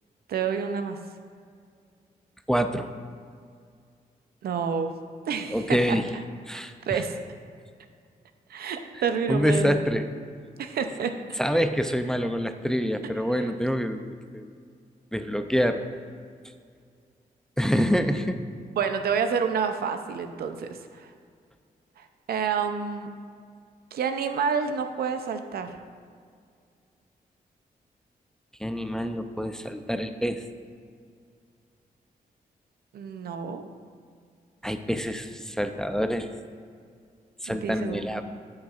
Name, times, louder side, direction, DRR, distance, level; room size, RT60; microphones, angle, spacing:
voice 1, 0.3-1.0 4.4-4.9 5.3-6.0 6.9-7.2 8.5-9.7 10.6-11.2 18.8-21.1 22.0-23.1 23.9-25.7 32.9-33.7 37.5-38.2, right 6 dB, 85° right, 8 dB, 0.5 m, -28 dB
voice 2, 2.5-2.9 5.5-6.1 6.5-7.0 9.3-10.1 11.4-14.1 14.3-14.5 15.1-15.8 17.6-18.4 28.6-30.4 34.6-36.3 37.4-38.2, equal, 5° left, 8 dB, 0.4 m, -26 dB
12.5 x 6.4 x 2.4 m, 2.2 s
cardioid pair, 75°, 16 cm